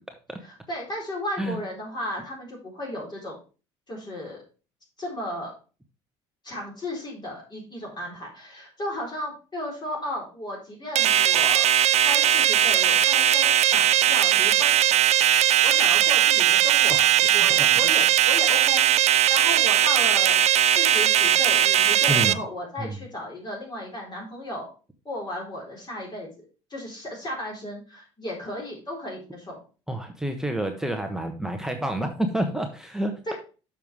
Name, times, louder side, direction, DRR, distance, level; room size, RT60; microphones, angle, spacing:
voice 1, 0.4-3.3 3.9-4.4 5.0-5.5 6.4-11.7 12.0-14.8 15.6-20.4 20.7-24.7 25.0-26.4 26.7-29.6 33.3-33.4, left 1 dB, 30° left, -3 dB, 4.2 m, -34 dB
sound 1, 11.0-22.3, right 11 dB, 50° right, 0.5 m, -19 dB
voice 2, 22.1-22.4 22.8-23.0 29.9-33.1, right 1 dB, 5° right, 4 dB, 1.1 m, -28 dB
6.9 x 5.8 x 4.8 m, 0.35 s
supercardioid pair, 75°, 15 cm